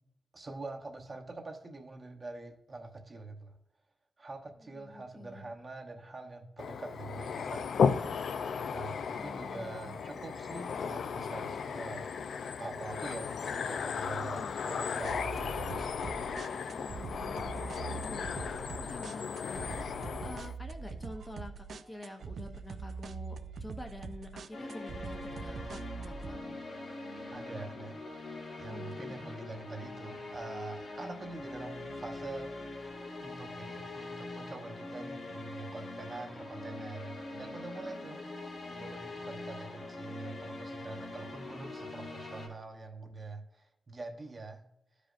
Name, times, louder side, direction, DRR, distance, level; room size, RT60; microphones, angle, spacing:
voice 1, 0.3-3.6 4.2-7.7 8.7-12.0 12.6-16.3 18.4-18.6 27.3-32.9 33.2-44.6, right 3 dB, 30° right, 3 dB, 0.9 m, -45 dB
voice 2, 4.6-5.5 9.2-10.3 14.2-14.6 16.7-18.6 18.9-25.6 25.9-26.6 28.7-29.3 38.0-38.9, left 1 dB, 20° left, 4 dB, 0.7 m, -48 dB
sound 1, 6.6-20.5, left 6 dB, 85° left, 0.4 m, -35 dB
sound 2, 15.0-26.4, right 5 dB, 80° right, 0.4 m, -43 dB
sound 3, 24.5-42.5, left 2 dB, 65° left, 2.0 m, -43 dB
13.0 x 5.0 x 2.5 m, 0.89 s
wide cardioid pair, 160°, 0 cm